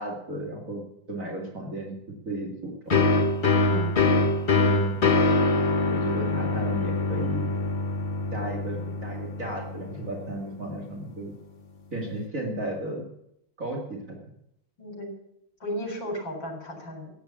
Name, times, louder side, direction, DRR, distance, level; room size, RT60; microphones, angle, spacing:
voice 1, 0.0-3.1 4.6-5.0 5.9-7.5 8.3-11.3 11.9-13.1 13.6-14.2, right 1 dB, 45° right, 0 dB, 2.6 m, -35 dB
sound 1, 2.9-10.4, left 3 dB, 35° left, 0.9 m, -24 dB
voice 2, 3.7-4.1 8.7-8.9 14.8-15.1 15.6-17.1, equal, 75° left, 3 dB, 4.9 m, -35 dB
15.5 x 8.8 x 8.4 m, 0.76 s
omnidirectional pair, 2.1 m